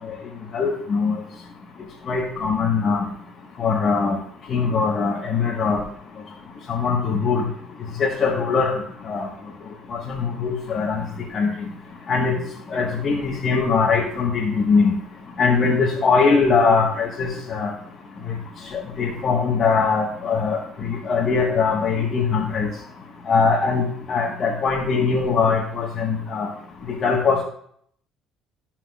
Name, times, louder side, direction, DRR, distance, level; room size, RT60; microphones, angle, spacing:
voice 1, 0.5-1.2 2.1-3.0 3.6-4.2 4.5-5.8 6.7-7.4 8.0-8.7 9.1-9.3 10.1-11.0 11.3-11.5 12.1-12.4 12.7-14.9 15.4-17.7 19.0-22.7 23.3-23.8 24.1-26.5 27.0-27.4, left 5 dB, 40° left, -2 dB, 1.2 m, -21 dB
14.0 x 5.8 x 2.3 m, 0.65 s
cardioid pair, 130°, 0 cm